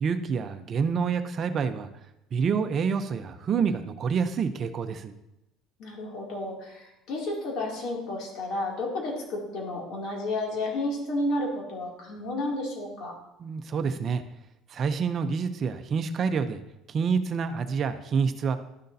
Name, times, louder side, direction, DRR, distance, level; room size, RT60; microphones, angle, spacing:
voice 1, 0.0-1.9 2.3-5.1 13.4-14.2 14.7-16.6 16.9-18.6, right 6 dB, 40° right, 9 dB, 0.6 m, -27 dB
voice 2, 5.8-13.1, left 1 dB, 65° left, -1 dB, 2.5 m, -31 dB
11.5 x 6.5 x 2.7 m, 0.89 s
cardioid pair, 115°, 0 cm